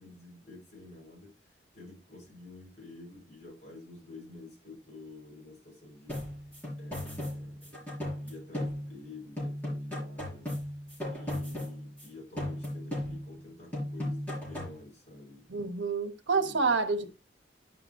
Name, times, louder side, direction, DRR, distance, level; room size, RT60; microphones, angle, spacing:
voice 1, 0.0-6.3 6.8-10.5 11.1-15.5 16.3-16.7 17.0-17.1, left 2 dB, 40° left, 5.9 m, -49 dB
sound 1, 6.1-9.1 9.4-12.1 12.4-13.4 13.7-14.8, left 1 dB, 10° left, 4.9 m, -36 dB
voice 2, 15.5-17.1, right 4 dB, 80° right, 1.1 m, -28 dB
10.0 x 5.9 x 3.0 m
head